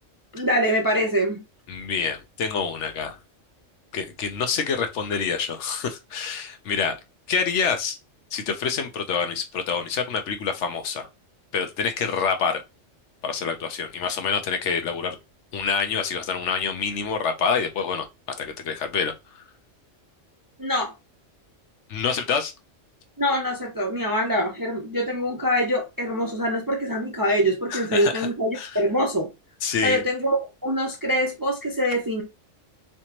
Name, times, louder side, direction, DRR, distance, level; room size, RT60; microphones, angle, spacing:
voice 1, 0.3-1.4 20.6-20.9 23.2-29.3 29.8-32.2, equal, 30° right, 0.4 m, -24 dB
voice 2, 1.7-3.2 3.9-7.0 7.3-8.0 8.3-11.1 11.5-12.6 13.2-15.2 15.5-18.1 18.4-19.4 21.9-22.5 27.7-28.3 28.5-28.7 29.6-30.0, left 6 dB, 75° left, 1.0 m, -27 dB
3.3 x 2.9 x 2.9 m
omnidirectional pair, 1.3 m